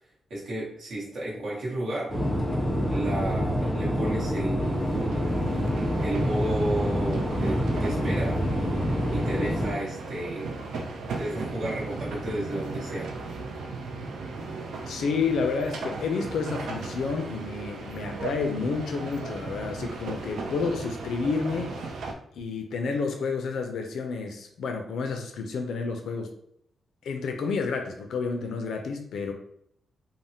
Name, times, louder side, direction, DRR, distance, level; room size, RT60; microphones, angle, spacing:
voice 1, 0.3-2.1 2.8-5.2 6.0-8.4 9.1-10.6 11.2-13.1, right 1 dB, 60° right, -5 dB, 1.0 m, -33 dB
sound 1, 2.1-9.7, equal, 5° left, 0.5 m, -27 dB
sound 2, 4.6-22.1, right 3 dB, 85° right, 0.5 m, -36 dB
voice 2, 14.9-21.8 22.3-26.3 27.0-29.3, left 4 dB, 75° left, 4 dB, 0.4 m, -30 dB
3.4 x 2.0 x 2.7 m, 0.71 s
wide cardioid pair, 160°, 0 cm